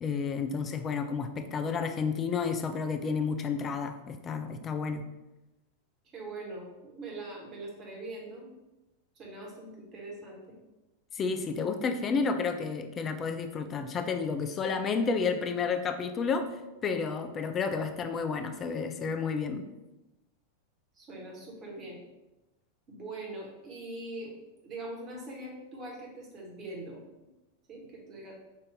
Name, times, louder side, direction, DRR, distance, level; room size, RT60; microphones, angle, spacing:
voice 1, 0.0-5.0 11.1-16.5 16.8-19.7, left 5 dB, 25° left, 7 dB, 0.4 m, -31 dB
voice 2, 6.0-8.5 9.1-10.5 20.9-22.0 22.9-24.3 24.6-27.0 27.7-28.4, right 2 dB, 30° right, -2 dB, 1.4 m, -42 dB
5.3 x 2.6 x 3.4 m, 1.0 s
figure-of-eight pair, 90°, 0 cm